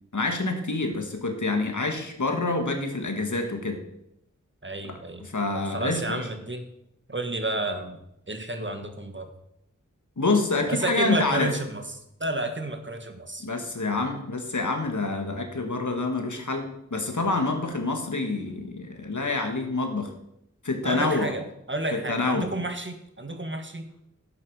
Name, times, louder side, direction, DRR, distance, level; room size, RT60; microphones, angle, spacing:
voice 1, 0.1-3.8 4.8-4.9 5.2-6.2 10.2-11.5 13.4-20.1 20.6-21.3 21.9-22.5, left 3 dB, 75° left, 4 dB, 1.8 m, -27 dB
voice 2, 4.6-5.2 5.5-6.7 7.1-8.0 8.3-9.3 10.7-11.8 12.2-13.5 20.8-23.9, right 2 dB, 40° right, 7 dB, 1.5 m, -31 dB
11.0 x 8.5 x 4.8 m, 0.81 s
wide cardioid pair, 50°, 30 cm